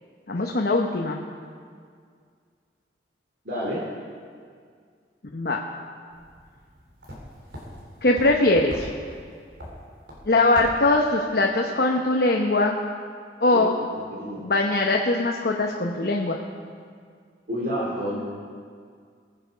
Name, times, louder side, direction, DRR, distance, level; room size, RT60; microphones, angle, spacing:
voice 1, 0.3-1.2 5.3-5.6 8.0-8.9 10.2-12.8 13.4-13.8 14.4-16.4, left 2 dB, 60° left, 0 dB, 0.9 m, -21 dB
voice 2, 3.4-3.9 13.5-14.4 17.5-18.3, equal, 60° right, -5 dB, 2.4 m, -30 dB
sound 1, 6.1-11.3, equal, 90° right, 3.4 m, -42 dB
21.0 x 7.8 x 5.1 m, 2.1 s
head